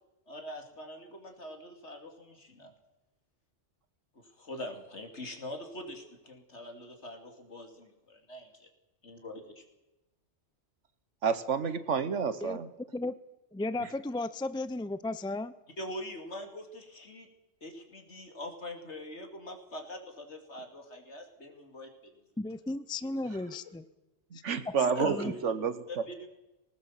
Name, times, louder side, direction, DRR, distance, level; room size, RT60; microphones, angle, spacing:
voice 1, 0.3-2.7 4.1-8.7 9.0-9.6 15.8-17.3 17.6-22.1 23.3-23.5 24.9-25.5 25.9-26.1, left 1 dB, 70° left, 4 dB, 3.3 m, -43 dB
voice 2, 11.2-12.7 24.3-25.7, right 6 dB, 90° right, 13 dB, 1.5 m, -29 dB
voice 3, 13.5-15.5 22.4-23.8 25.0-25.3, left 2 dB, 5° left, 14 dB, 0.4 m, -34 dB
20.5 x 18.5 x 7.5 m, 0.98 s
omnidirectional pair, 1.2 m